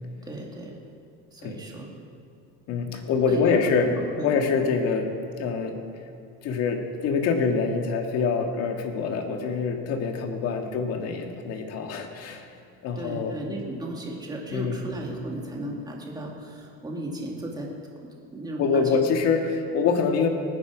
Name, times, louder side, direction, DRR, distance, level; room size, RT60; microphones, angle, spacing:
voice 1, 0.2-0.8 1.3-1.9 3.3-4.3 13.0-17.7 18.0-18.8, right 1 dB, 15° right, -1 dB, 2.2 m, -35 dB
voice 2, 2.7-3.9 4.2-5.1 5.4-5.8 6.4-12.5 12.8-13.3 14.5-14.9 18.6-20.3, left 5 dB, 50° left, 4 dB, 1.8 m, -25 dB
20.0 x 9.6 x 5.0 m, 2.5 s
cardioid pair, 140°, 31 cm